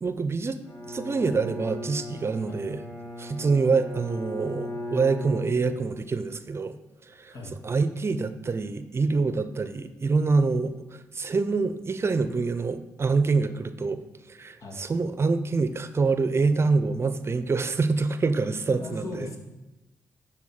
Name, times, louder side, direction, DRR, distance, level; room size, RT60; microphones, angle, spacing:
voice 1, 0.0-0.6 0.9-2.8 3.2-6.8 7.1-7.3 7.6-14.0 14.3-19.3, right 4 dB, 40° right, 11 dB, 0.7 m, -26 dB
Bowed string instrument, 0.6-6.1, left 1 dB, 45° left, 2.3 m, -38 dB
voice 2, 18.7-19.4, left 2 dB, 60° left, 2 dB, 1.8 m, -37 dB
11.0 x 4.0 x 5.9 m, 1.0 s
supercardioid pair, 50°, 6 cm